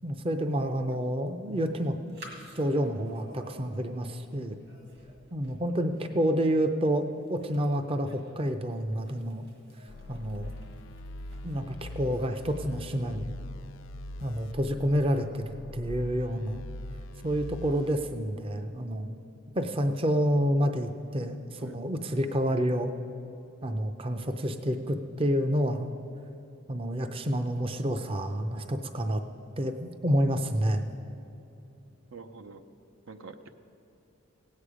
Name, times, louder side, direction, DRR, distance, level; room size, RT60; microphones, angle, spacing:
voice 1, 0.0-2.2 2.6-4.6 5.3-9.4 10.1-10.5 11.4-13.3 14.2-16.6 17.2-19.2 19.6-22.9 23.6-25.9 26.7-29.2 29.6-30.9, equal, 25° right, 7 dB, 0.5 m, -29 dB
voice 2, 0.7-1.0 13.0-13.5 21.6-21.8 32.1-32.6 33.1-33.5, right 4 dB, 80° right, 9 dB, 0.7 m, -47 dB
sound 1, 1.3-13.0, right 1 dB, 55° right, 1.9 m, -54 dB
sound 2, 9.9-17.9, left 2 dB, 70° left, 0.5 m, -42 dB
17.5 x 8.4 x 4.9 m, 2.9 s
head